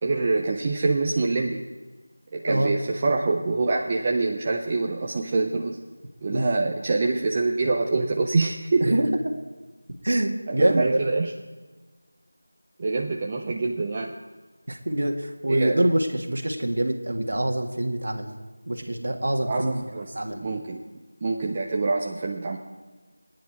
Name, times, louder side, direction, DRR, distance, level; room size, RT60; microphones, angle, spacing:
voice 1, 0.0-1.6 2.3-5.8 6.2-9.0 10.5-11.3 12.8-14.1 15.5-15.9 19.5-20.8 21.2-22.6, right 3 dB, 15° right, 0 dB, 0.5 m, -25 dB
voice 2, 10.0-11.0 14.7-18.3 18.7-19.8 20.1-20.4, right 1 dB, 50° right, 3 dB, 2.0 m, -25 dB
21.0 x 9.8 x 4.7 m, 1.3 s
figure-of-eight pair, 180°, 0 cm